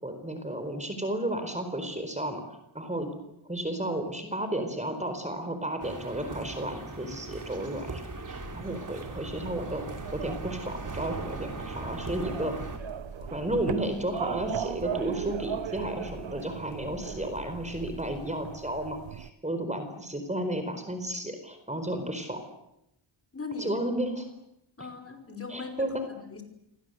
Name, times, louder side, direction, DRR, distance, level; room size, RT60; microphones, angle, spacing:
voice 1, 0.0-2.4 2.7-3.1 3.5-8.0 8.3-9.9 10.1-12.5 13.2-22.4 23.6-24.3 25.5-26.0, right 1 dB, 15° right, 7 dB, 4.3 m, -33 dB
sound 1, 5.8-12.8, right 3 dB, 40° right, 4.0 m, -40 dB
sound 2, 8.1-18.3, left 2 dB, 50° left, 6.5 m, -47 dB
sound 3, 9.0-19.3, right 9 dB, 75° right, 1.1 m, -39 dB
voice 2, 23.3-23.8 24.8-25.9 26.2-26.4, left 4 dB, 30° left, 5 dB, 5.3 m, -39 dB
28.5 x 24.0 x 8.2 m, 0.84 s
wide cardioid pair, 115°, 47 cm